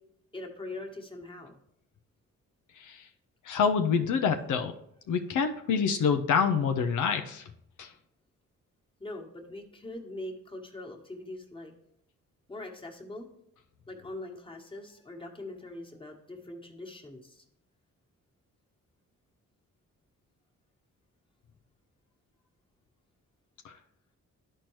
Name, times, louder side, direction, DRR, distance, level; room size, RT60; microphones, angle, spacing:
voice 1, 0.3-1.6 9.0-11.7 12.5-13.3 13.9-17.4, left 2 dB, 15° left, 1 dB, 1.4 m, -42 dB
voice 2, 3.5-4.7 5.1-7.4 7.8-7.9 23.6-23.7, left 6 dB, 75° left, 6 dB, 0.6 m, -26 dB
12.0 x 4.4 x 3.1 m, 0.74 s
cardioid pair, 80°, 31 cm